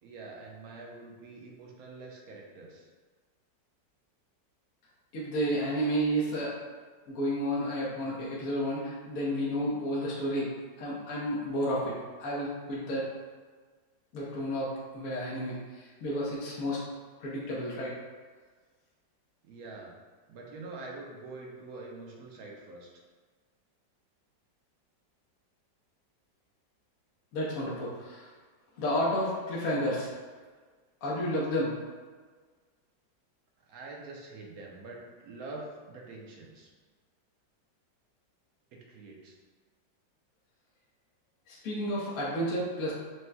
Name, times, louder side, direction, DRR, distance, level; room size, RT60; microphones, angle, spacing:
voice 1, 0.0-2.9 8.0-8.2 19.4-19.9 20.3-22.9 33.7-36.7 38.7-39.4, right 3 dB, 60° right, -2 dB, 1.1 m, -45 dB
voice 2, 5.1-6.5 7.1-10.5 10.8-13.1 14.1-16.8 17.2-18.0 27.3-28.3 28.8-30.1 31.0-31.7 41.5-42.9, equal, 55° left, -7 dB, 1.2 m, -31 dB
6.3 x 2.9 x 2.2 m, 1.5 s
omnidirectional pair, 2.0 m